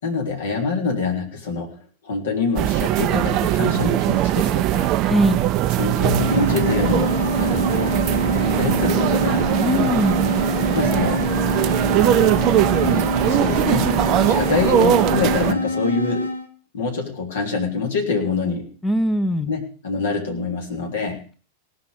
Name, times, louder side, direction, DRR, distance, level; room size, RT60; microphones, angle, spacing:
voice 1, 0.0-1.8 2.0-4.9 5.8-8.0 8.3-9.5 10.7-11.3 12.8-14.0 14.2-16.3 16.7-18.7 19.5-21.2, left 4 dB, 60° left, 2 dB, 3.4 m, -25 dB
sound 1, 2.6-15.5, right 13 dB, 40° right, 0.6 m, -20 dB
voice 2, 5.0-5.4 9.6-10.2 18.8-19.6, equal, 10° left, 9 dB, 0.9 m, -21 dB
sound 2, 6.1-16.5, left 2 dB, 80° right, 1.2 m, -26 dB
17.5 x 6.0 x 8.1 m, 0.41 s
figure-of-eight pair, 90°, 0 cm